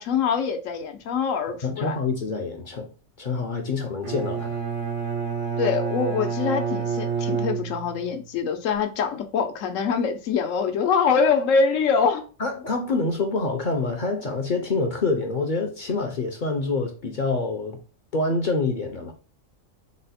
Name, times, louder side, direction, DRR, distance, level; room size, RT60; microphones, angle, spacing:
voice 1, 0.0-2.0 3.7-3.8 5.6-12.3, left 5 dB, 85° left, 1.1 m, -24 dB
voice 2, 1.6-2.9 3.2-4.6 12.4-17.8 18.1-19.1, left 3 dB, 50° left, 0.6 m, -26 dB
Bowed string instrument, 4.0-8.2, right 6 dB, 75° right, 1.2 m, -28 dB
4.0 x 2.1 x 4.0 m
omnidirectional pair, 1.3 m